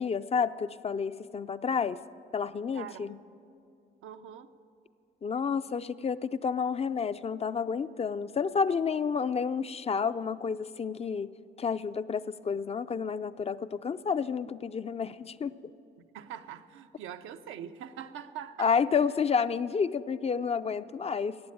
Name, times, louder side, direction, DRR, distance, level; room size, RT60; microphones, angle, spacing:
voice 1, 0.0-2.0 2.3-3.2 5.2-11.3 11.6-15.5 18.6-21.4, left 6 dB, 30° left, 13 dB, 0.4 m, -30 dB
voice 2, 2.7-3.3 4.0-4.5 16.1-18.7, right 9 dB, 85° right, 8 dB, 0.7 m, -43 dB
15.0 x 9.2 x 8.8 m, 2.6 s
cardioid pair, 90°, 20 cm